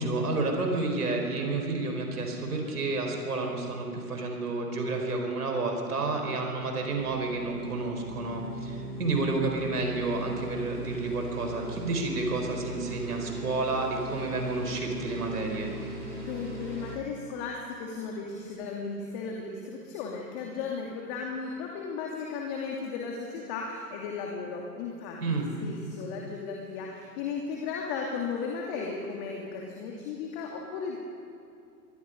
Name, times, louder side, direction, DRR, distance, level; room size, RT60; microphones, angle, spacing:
voice 1, 0.0-15.7 25.2-25.5, right 3 dB, 70° right, 3 dB, 4.9 m, -30 dB
sound 1, 6.9-17.0, right 1 dB, 90° right, 5.0 m, -40 dB
voice 2, 16.1-31.0, left 5 dB, 35° left, -1 dB, 2.7 m, -35 dB
24.0 x 22.0 x 5.3 m, 2.5 s
figure-of-eight pair, 115°, 48 cm